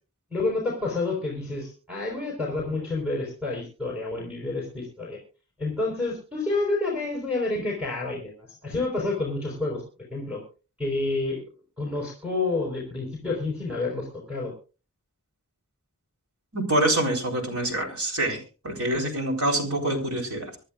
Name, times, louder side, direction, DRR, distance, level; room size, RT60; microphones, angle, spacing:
voice 1, 0.3-5.2 5.6-9.8 10.1-10.4 10.8-11.4 11.8-14.5, left 3 dB, 5° right, -2 dB, 4.4 m, -29 dB
voice 2, 16.5-20.5, right 1 dB, 80° right, 2 dB, 4.0 m, -26 dB
25.5 x 11.0 x 2.5 m, 0.35 s
head